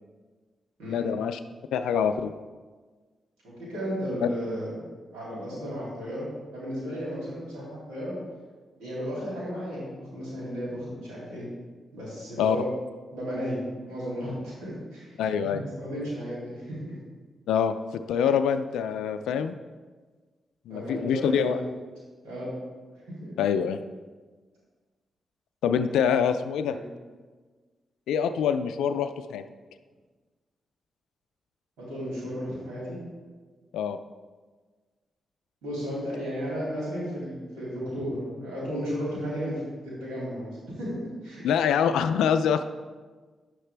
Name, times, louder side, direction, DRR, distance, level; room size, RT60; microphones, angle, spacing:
voice 1, 0.9-1.4 1.7-2.3 12.4-12.6 15.2-15.6 17.5-19.6 20.7-21.6 23.4-23.8 25.6-26.8 28.1-29.4 33.7-34.0 41.4-42.6, left 7 dB, 90° left, 9 dB, 0.3 m, -25 dB
voice 2, 3.4-4.8 5.1-8.2 8.8-11.5 11.9-12.6 13.1-13.6 13.9-16.9 20.7-21.7 22.2-22.5 22.9-23.3 26.7-26.8 31.8-33.0 35.6-41.4, equal, 85° right, -7 dB, 2.8 m, -34 dB
10.0 x 6.6 x 3.3 m, 1.4 s
supercardioid pair, 50°, 0 cm